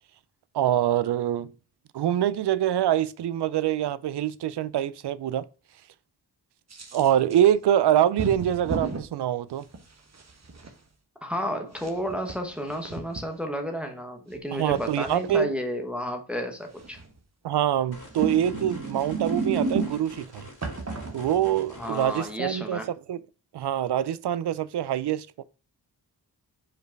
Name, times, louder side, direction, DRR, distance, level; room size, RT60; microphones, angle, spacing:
voice 1, 0.5-1.5 1.9-5.4 6.9-9.6 14.5-15.5 17.4-20.4 21.1-22.8 23.1-23.2 23.5-25.4, right 11 dB, 75° right, 0.5 m, -25 dB
sound 1, 6.7-7.4 8.2-9.0 9.7-10.7 11.7-13.2 14.3-15.3 16.8-17.2 18.0-20.2 20.6-21.7, right 3 dB, 40° right, 1.2 m, -33 dB
voice 2, 11.2-17.0 21.7-22.9, equal, 5° right, 1.1 m, -32 dB
sound 2, 17.9-22.3, left 2 dB, 45° left, 2.8 m, -46 dB
5.0 x 4.9 x 4.5 m
wide cardioid pair, 115°, 40 cm